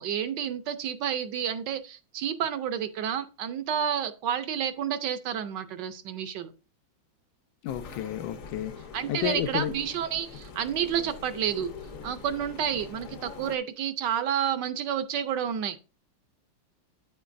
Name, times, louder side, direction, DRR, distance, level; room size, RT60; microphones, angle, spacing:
voice 1, 0.0-6.5 8.9-11.7 12.0-15.8, right 9 dB, 70° right, 1.2 m, -30 dB
voice 2, 7.6-8.8 9.1-9.7, left 10 dB, 80° left, 1.4 m, -31 dB
sound 1, 7.7-13.6, left 5 dB, 55° left, 1.1 m, -44 dB
8.6 x 8.3 x 2.5 m
omnidirectional pair, 2.1 m